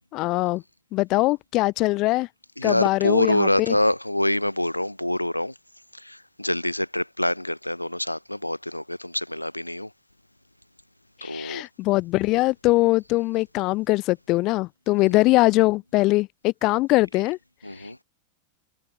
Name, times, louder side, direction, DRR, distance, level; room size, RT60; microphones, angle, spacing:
voice 1, 0.1-0.6 0.9-2.3 2.6-3.7 11.2-17.4 17.8-17.9, left 20 dB, 40° left, 0.3 m, -22 dB
voice 2, 2.6-5.5 5.9-9.9 11.2-11.6 15.0-15.2 17.6-18.0, left 1 dB, 85° left, 1.1 m, -26 dB
figure-of-eight pair, 90°, 0 cm